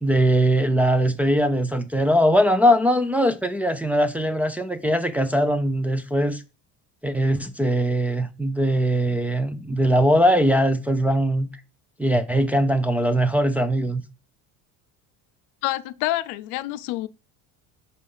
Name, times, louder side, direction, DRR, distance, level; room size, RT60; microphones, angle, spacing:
voice 1, 0.0-6.4 7.0-11.5 12.0-14.0, equal, 5° right, 0.5 m, -21 dB
voice 2, 15.6-17.1, left 16 dB, 85° left, 0.6 m, -27 dB
5.6 x 4.9 x 5.4 m
cardioid pair, 150°, 36 cm